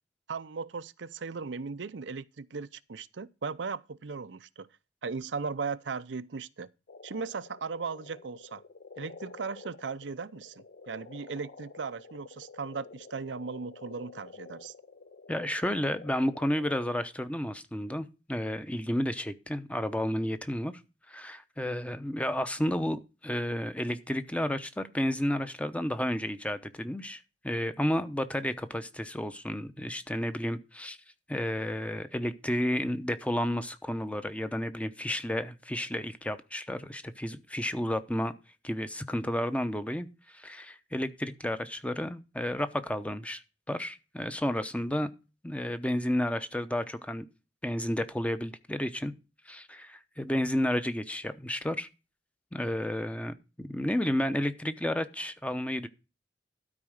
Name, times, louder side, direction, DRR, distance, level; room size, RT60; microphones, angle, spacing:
voice 1, 0.3-4.7 5.0-6.7 7.0-8.6 9.0-14.7, right 5 dB, 80° right, 0.6 m, -37 dB
sound 1, 6.9-17.0, left 4 dB, 60° left, 0.8 m, -50 dB
voice 2, 15.3-20.7 21.1-31.0 31.3-38.3 38.6-40.1 40.3-43.4 43.7-45.1 45.4-47.2 47.6-49.1 49.5-51.9 52.5-55.9, left 1 dB, 10° left, 0.8 m, -31 dB
12.5 x 4.8 x 6.4 m
head